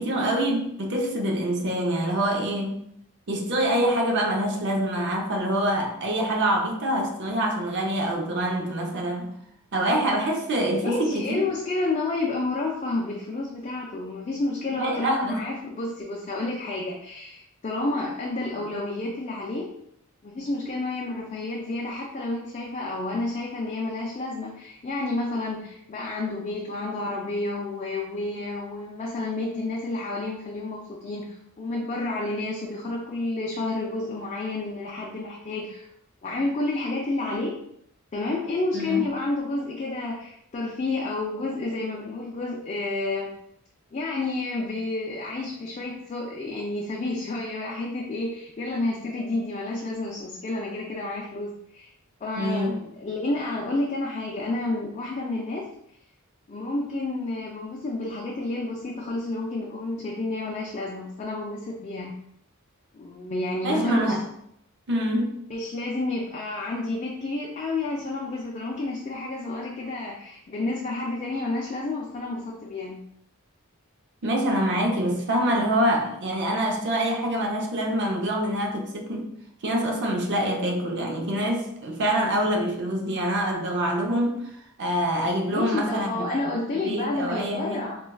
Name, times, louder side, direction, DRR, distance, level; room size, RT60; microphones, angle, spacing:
voice 1, 0.0-2.8 3.3-9.4 9.7-11.4 14.8-15.4 38.7-39.1 52.4-52.8 63.6-64.2 64.9-65.4 74.2-79.3 79.6-84.5 84.8-86.4 86.8-87.9, right 1 dB, 55° right, 0.6 m, -25 dB
voice 2, 10.8-19.7 20.2-35.9 36.2-37.6 38.1-43.3 43.9-51.9 52.2-55.7 56.5-62.1 62.9-64.1 65.5-73.0 85.5-88.1, left 2 dB, 30° left, 0.4 m, -30 dB
4.3 x 2.3 x 2.3 m
head